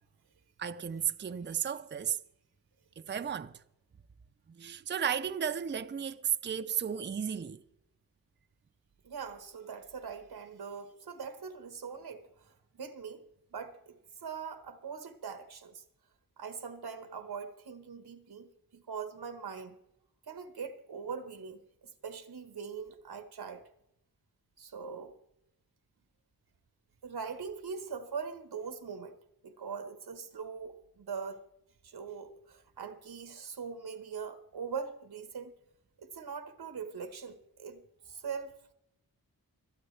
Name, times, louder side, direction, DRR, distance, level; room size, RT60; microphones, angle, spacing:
voice 1, 0.6-2.2 3.0-3.5 4.5-7.6, right 8 dB, 30° right, 0.5 m, -34 dB
voice 2, 9.0-15.8 16.4-19.8 20.3-23.6 24.6-25.2 27.0-29.2 29.4-31.4 31.8-35.5 36.0-38.5, right 6 dB, 90° right, 1.3 m, -42 dB
26.5 x 8.9 x 3.3 m
wide cardioid pair, 110°, 37 cm